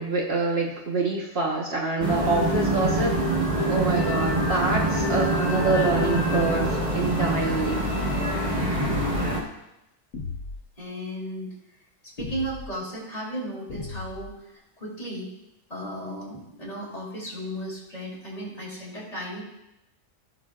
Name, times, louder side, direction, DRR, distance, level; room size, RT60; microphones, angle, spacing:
voice 1, 0.0-3.1 3.7-7.8, right 3 dB, 50° right, -2 dB, 1.5 m, -26 dB
sound 1, 2.0-9.4, right 1 dB, 25° right, 1.5 m, -25 dB
voice 2, 8.6-9.4 10.8-11.5 12.0-15.3 15.7-19.4, right 1 dB, 30° left, -5 dB, 3.0 m, -35 dB
sound 2, 8.7-9.3 10.1-10.7 12.2-12.7 13.7-14.3, left 4 dB, 90° left, 1.5 m, -36 dB
16.0 x 6.6 x 2.5 m, 0.90 s
omnidirectional pair, 1.4 m